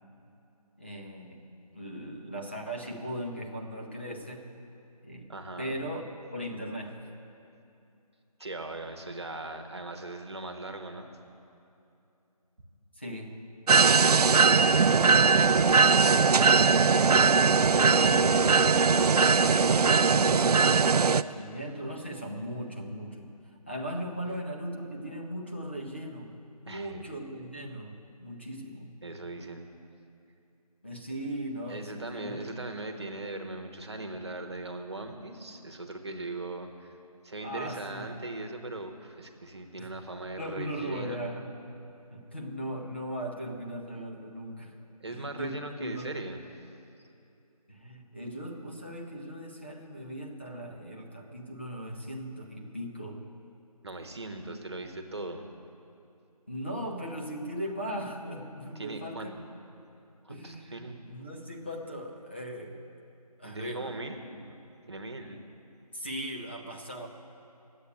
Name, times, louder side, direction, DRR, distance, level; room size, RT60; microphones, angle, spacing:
voice 1, 0.8-4.5 5.0-6.0 6.3-7.0 12.9-13.4 17.8-23.3 23.7-26.4 26.6-28.9 30.8-32.5 37.4-38.1 39.8-40.0 40.4-41.5 42.1-44.8 45.1-46.1 47.7-53.3 56.5-59.5 60.3-62.8 63.4-63.9 64.4-64.5 65.9-67.1, equal, 15° left, 0 dB, 0.6 m, -38 dB
voice 2, 5.3-5.8 8.4-11.1 13.7-16.5 26.6-27.0 29.0-29.6 31.7-37.0 37.2-41.2 45.0-46.4 53.8-55.5 58.7-59.3 60.2-61.0 63.4-64.2 64.9-65.4, right 2 dB, 45° right, 5 dB, 1.1 m, -39 dB
sound 1, 13.7-21.2, right 5 dB, 75° right, 0.4 m, -20 dB
11.0 x 8.3 x 9.4 m, 2.7 s
figure-of-eight pair, 170°, 20 cm